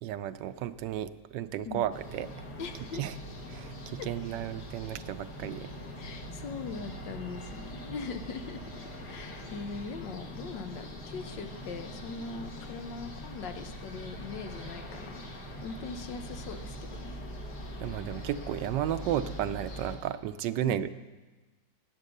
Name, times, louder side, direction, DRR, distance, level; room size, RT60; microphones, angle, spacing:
voice 1, 0.0-2.5 2.9-3.2 3.5-5.7 17.8-20.9, right 11 dB, 75° right, 12 dB, 1.2 m, -33 dB
sound 1, 1.9-20.0, equal, 65° left, 2.4 m, -42 dB
voice 2, 2.6-3.0 6.0-8.6 9.0-15.2 15.6-17.1 20.6-20.8, left 4 dB, 80° left, 7 dB, 1.6 m, -41 dB
15.5 x 9.0 x 6.6 m, 1.2 s
omnidirectional pair, 2.0 m